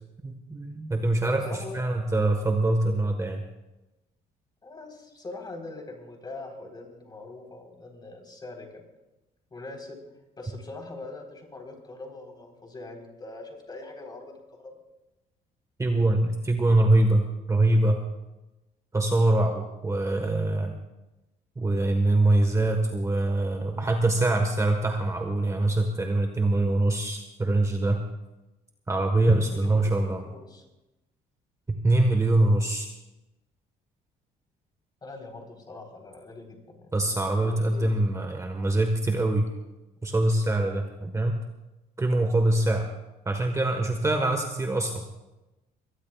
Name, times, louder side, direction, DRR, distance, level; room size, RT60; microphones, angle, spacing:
voice 1, 0.2-3.4 15.8-18.0 18.9-20.7 21.6-28.0 28.9-30.2 31.7-32.9 36.9-39.5 40.0-41.3 42.0-42.9 43.2-45.1, right 2 dB, 15° right, 4 dB, 1.4 m, -24 dB
voice 2, 1.2-1.8 4.6-8.8 9.5-10.0 10.4-14.8 29.5-30.7 35.0-36.9 37.4-37.9, left 2 dB, 25° left, 1 dB, 4.1 m, -42 dB
23.5 x 18.0 x 2.4 m, 1.0 s
cardioid pair, 110°, 17 cm